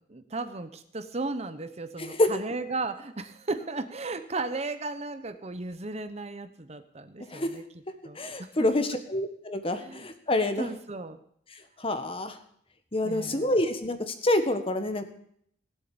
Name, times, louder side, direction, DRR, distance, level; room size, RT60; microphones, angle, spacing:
voice 1, 0.0-7.6 8.0-9.0 9.8-10.1 10.6-11.2 13.0-13.5, right 3 dB, 35° right, 11 dB, 1.0 m, -35 dB
voice 2, 8.2-10.7 11.8-12.4 12.9-15.1, left 1 dB, 30° left, 8 dB, 1.6 m, -27 dB
18.0 x 8.1 x 8.7 m, 0.65 s
head